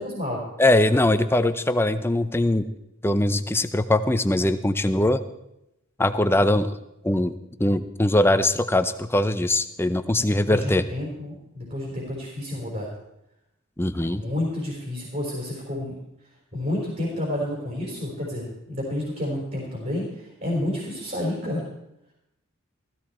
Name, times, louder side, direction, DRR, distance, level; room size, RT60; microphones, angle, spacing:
voice 1, 0.0-0.4 10.2-12.9 14.1-16.0 16.5-21.6, left 1 dB, 40° right, -3 dB, 4.5 m, -30 dB
voice 2, 0.6-2.7 3.0-5.2 6.0-6.8 7.0-7.3 7.6-10.8 13.8-14.2, left 1 dB, 10° left, 10 dB, 0.6 m, -21 dB
15.5 x 15.0 x 4.3 m, 0.84 s
head